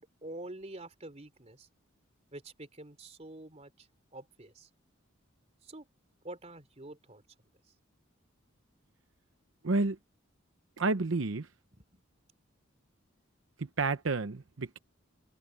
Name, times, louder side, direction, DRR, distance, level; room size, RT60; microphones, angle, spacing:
voice 1, 0.0-1.7 2.3-3.9 4.1-4.7 5.6-5.9 6.2-7.2 11.7-12.0, right 2 dB, 35° right, 3.4 m, -47 dB
voice 2, 9.6-10.0 10.8-11.5 13.6-14.8, right 3 dB, 80° right, 0.8 m, -30 dB
head